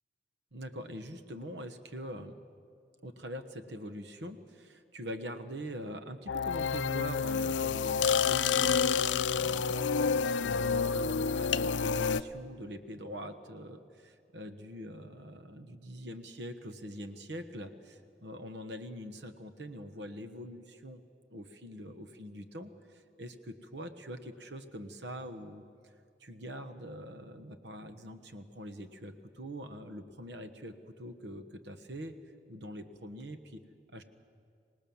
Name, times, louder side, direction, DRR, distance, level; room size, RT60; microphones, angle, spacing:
voice 1, 0.5-2.4 3.0-8.8 9.3-21.0 21.3-25.9 26.2-32.1 32.5-33.6 33.9-34.0, equal, 75° right, 9 dB, 1.3 m, -44 dB
sound 1, 6.3-12.2, left 6 dB, 85° left, 0.5 m, -29 dB
25.5 x 19.0 x 7.2 m, 2.4 s
head